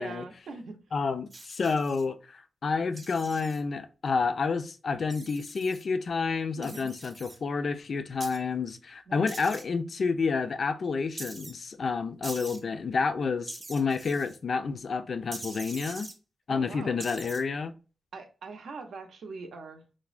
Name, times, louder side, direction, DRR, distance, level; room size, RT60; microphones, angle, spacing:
voice 1, 0.0-0.8 6.6-6.9 9.1-9.3 16.5-17.0 18.1-19.8, right 4 dB, 90° right, 0.6 m, -42 dB
voice 2, 0.9-16.1 16.5-17.7, left 4 dB, 60° left, 0.3 m, -29 dB
sound 1, 1.3-2.0 3.0-3.6 5.1-5.8 6.6-7.4 8.2-8.4 9.3-9.6 11.2-11.5 12.2-12.6 13.5-14.4 15.3-16.1 17.0-17.4, right 2 dB, 35° right, 0.6 m, -43 dB
3.3 x 2.1 x 2.4 m
wide cardioid pair, 100°, 0 cm